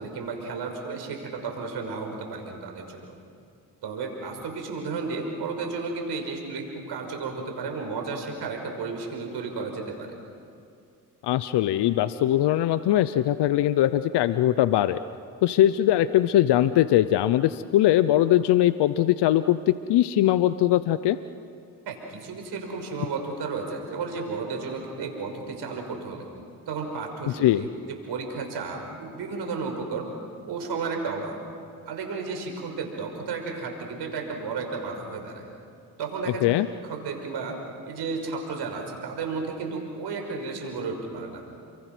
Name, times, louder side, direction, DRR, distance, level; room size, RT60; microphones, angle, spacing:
voice 1, 0.0-3.2 3.8-10.2 21.9-26.3 26.7-30.1 30.5-31.4 31.9-35.5 36.0-36.4 36.8-37.6 37.9-41.4, right 4 dB, 75° right, 3 dB, 5.9 m, -33 dB
voice 2, 11.2-15.0 15.4-21.2 27.4-27.7 36.4-36.7, left 13 dB, 75° left, 13 dB, 0.8 m, -21 dB
29.5 x 24.0 x 6.2 m, 2.5 s
supercardioid pair, 55°, 41 cm